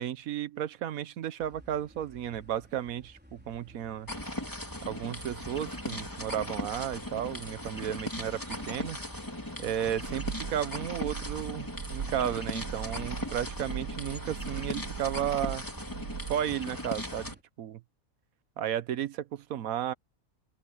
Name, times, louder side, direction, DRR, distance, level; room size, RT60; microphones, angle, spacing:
voice 1, 0.0-4.1 4.8-9.0 9.6-15.6 16.3-17.8 18.6-19.9, right 10 dB, 75° right, 1.2 m, -33 dB
sound 1, 1.4-17.4, equal, 5° right, 4.4 m, -55 dB
sound 2, 4.1-17.3, left 1 dB, 15° left, 3.1 m, -38 dB
sound 3, 10.0-16.4, right 7 dB, 55° right, 1.0 m, -40 dB
open air
omnidirectional pair, 1.5 m